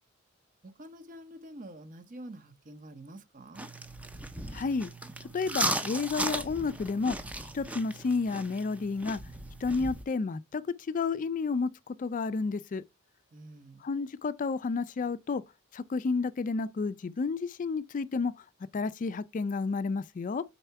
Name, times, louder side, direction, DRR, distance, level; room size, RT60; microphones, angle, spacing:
voice 1, 0.6-3.7 13.3-13.9, right 1 dB, 40° right, 0.8 m, -47 dB
sound 1, 3.5-10.0, right 1 dB, 5° right, 0.6 m, -36 dB
voice 2, 4.5-4.9 5.3-7.2 7.5-9.2 9.6-12.8 13.8-15.4 15.7-18.4 18.7-20.4, left 4 dB, 40° left, 0.3 m, -31 dB
4.5 x 4.1 x 5.6 m
head